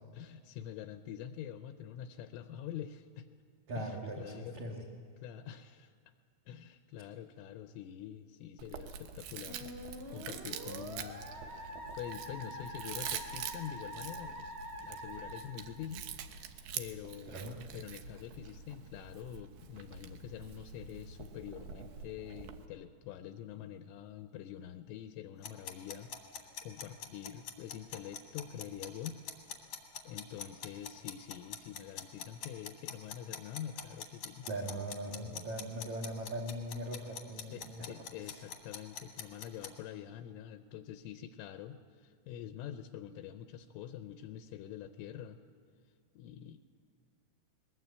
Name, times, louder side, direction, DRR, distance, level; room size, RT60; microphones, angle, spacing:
voice 1, 0.1-3.3 3.8-4.6 5.2-5.9 6.5-11.3 12.0-14.5 14.8-16.1 16.8-29.2 30.0-34.5 37.5-45.4 46.2-46.6, left 10 dB, 80° left, 8 dB, 3.1 m, -46 dB
voice 2, 3.7-4.8 17.3-17.6 34.4-37.9 38.3-38.4, right 1 dB, 60° right, -1 dB, 1.9 m, -40 dB
Chewing mastication, 8.6-22.7, right 8 dB, 85° right, 2.1 m, -46 dB
Musical instrument, 9.5-16.3, equal, 25° right, 2.9 m, -45 dB
sound 1, 25.4-39.7, left 8 dB, 55° left, 2.0 m, -44 dB
21.0 x 21.0 x 8.2 m, 2.1 s
omnidirectional pair, 5.9 m